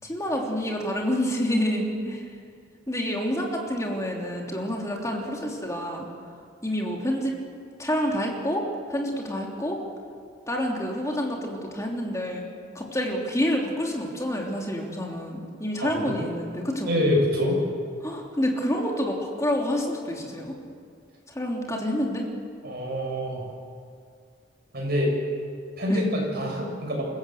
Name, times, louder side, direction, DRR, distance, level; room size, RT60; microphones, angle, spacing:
voice 1, 0.0-2.3 2.9-6.1 6.6-7.3 7.8-9.8 10.5-12.4 12.7-16.9 18.0-20.6 21.3-22.3 25.9-26.1, equal, 15° left, 0 dB, 3.3 m, -28 dB
voice 2, 16.9-17.6 22.6-23.4 24.7-25.1 25.8-27.1, left 1 dB, 55° right, -1 dB, 7.1 m, -25 dB
27.5 x 15.5 x 7.9 m, 2.2 s
head